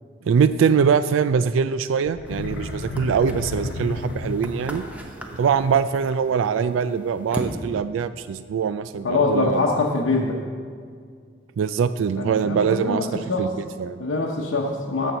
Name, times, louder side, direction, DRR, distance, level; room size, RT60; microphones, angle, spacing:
voice 1, 0.2-4.8 5.3-9.7 11.6-14.0, right 6 dB, 80° right, 13 dB, 0.3 m, -23 dB
sound 1, 2.1-4.9, left 2 dB, 55° left, 0.6 m, -31 dB
sound 2, 2.2-7.5, right 1 dB, 5° right, 0.9 m, -38 dB
voice 2, 9.0-10.4 12.2-13.5 14.0-15.1, left 3 dB, 85° left, -3 dB, 0.9 m, -23 dB
13.5 x 4.5 x 6.7 m, 2.1 s
head